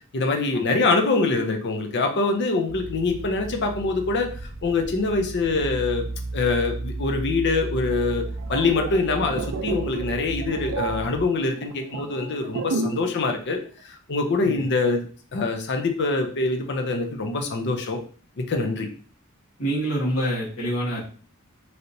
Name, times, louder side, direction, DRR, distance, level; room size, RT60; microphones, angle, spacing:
voice 1, 0.1-4.3 4.6-6.1 6.3-13.6 13.8-18.0 18.4-18.9, left 3 dB, 55° left, 4 dB, 0.5 m, -24 dB
sound 1, 2.7-11.3, right 2 dB, 85° right, 0.8 m, -34 dB
sound 2, 8.2-13.2 13.4-13.7, right 4 dB, 65° right, 0.4 m, -32 dB
voice 2, 14.4-14.8 19.6-21.0, right 1 dB, 75° left, -8 dB, 1.5 m, -27 dB
3.2 x 2.8 x 2.6 m, 0.41 s
head